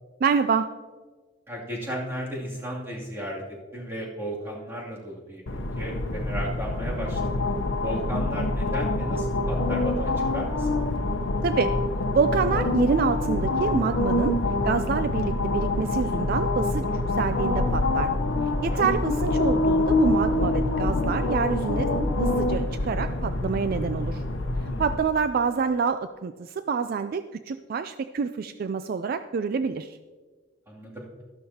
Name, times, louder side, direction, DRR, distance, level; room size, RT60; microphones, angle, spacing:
voice 1, 0.2-0.7 11.4-11.7 12.1-14.4 14.6-18.1 18.6-21.9 22.2-24.2 24.8-30.0, right 5 dB, 50° right, 11 dB, 0.3 m, -27 dB
voice 2, 1.5-3.4 3.7-7.4 7.8-10.8 18.7-18.8 24.7-24.8 30.7-31.1, equal, 15° right, -5 dB, 2.6 m, -35 dB
sound 1, 5.5-25.0, left 2 dB, 85° left, 0.8 m, -26 dB
12.5 x 12.0 x 2.8 m, 1.4 s
head